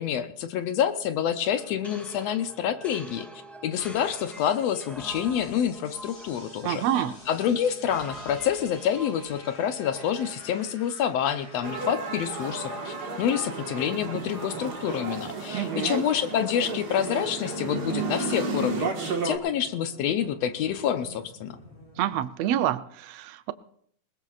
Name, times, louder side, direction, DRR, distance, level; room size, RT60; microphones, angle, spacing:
voice 1, 0.0-3.3 3.6-6.8 7.3-21.6, left 9 dB, 70° left, 9 dB, 1.8 m, -27 dB
sound 1, 1.4-10.7, equal, ahead, 1.3 m, -45 dB
sound 2, 3.8-22.2, left 1 dB, 50° left, 6.4 m, -48 dB
voice 2, 6.6-7.2 15.5-16.1 22.0-23.5, right 11 dB, 75° right, 13 dB, 1.6 m, -27 dB
sound 3, 11.6-19.4, right 3 dB, 40° right, 1.7 m, -32 dB
20.5 x 20.0 x 2.4 m, 0.63 s
omnidirectional pair, 3.3 m